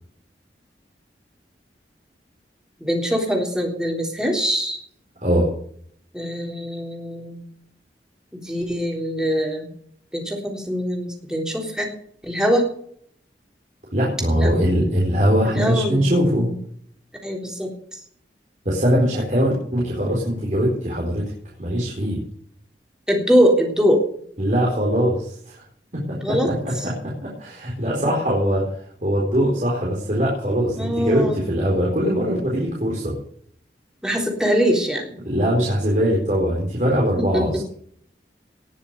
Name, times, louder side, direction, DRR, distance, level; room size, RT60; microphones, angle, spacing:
voice 1, 2.8-4.8 6.1-7.4 8.3-9.7 10.1-11.9 12.2-12.7 14.4-14.5 15.4-16.5 17.2-18.0 23.1-24.0 26.2-26.9 30.8-31.4 34.0-35.1 37.2-37.6, equal, 5° right, 1 dB, 3.5 m, -23 dB
voice 2, 13.9-16.5 18.7-21.2 21.6-22.2 24.4-25.6 26.1-26.2 26.6-28.6 29.0-33.2 35.2-37.5, equal, 45° right, -4 dB, 4.2 m, -21 dB
19.0 x 7.1 x 6.6 m, 0.62 s
head